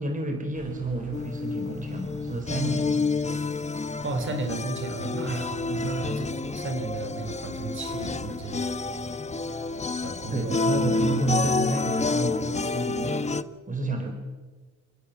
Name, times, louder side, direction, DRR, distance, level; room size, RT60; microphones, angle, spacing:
voice 1, 0.0-2.9 5.7-5.9 10.3-14.1, right 2 dB, 25° right, 5 dB, 4.1 m, -30 dB
sound 1, 0.5-13.5, right 2 dB, 70° right, 7.0 m, -46 dB
sound 2, 1.1-13.4, left 3 dB, 20° left, 1.2 m, -29 dB
voice 2, 4.0-8.8 10.0-10.6, right 3 dB, 40° right, 7 dB, 5.0 m, -33 dB
28.5 x 18.5 x 7.5 m, 1.4 s
cardioid pair, 90°, 30 cm